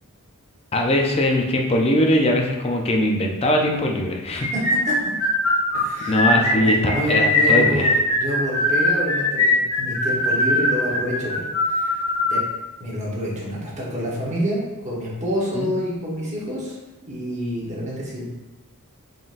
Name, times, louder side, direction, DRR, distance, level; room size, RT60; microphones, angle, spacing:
voice 1, 0.7-4.5 6.1-7.9 15.5-15.7, left 1 dB, 25° left, 1 dB, 0.4 m, -21 dB
voice 2, 4.3-4.9 5.7-12.0 12.3-12.4 12.8-16.8 17.0-18.2, equal, 30° right, -5 dB, 1.0 m, -28 dB
sound 1, 4.4-12.4, left 2 dB, 70° left, 1.3 m, -20 dB
3.8 x 3.8 x 2.5 m, 1.1 s
head